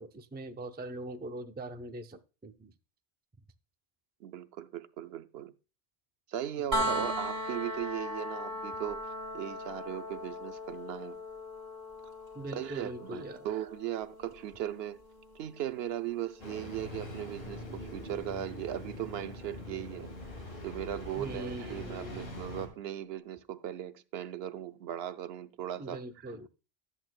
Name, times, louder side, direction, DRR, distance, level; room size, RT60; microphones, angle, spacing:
voice 1, 0.0-2.7 6.6-7.1 12.3-13.5 21.2-22.4 25.8-26.5, right 1 dB, 15° right, 0.4 m, -42 dB
voice 2, 4.2-5.5 6.3-11.2 12.5-15.0 15.3-20.1 20.6-26.4, right 11 dB, 80° right, 0.8 m, -38 dB
sound 1, 6.7-18.5 20.5-20.6, left 1 dB, 45° right, 1.6 m, -39 dB
Engine starting, 16.4-22.7, left 2 dB, 70° left, 2.2 m, -43 dB
12.5 x 8.3 x 2.2 m
omnidirectional pair, 1.0 m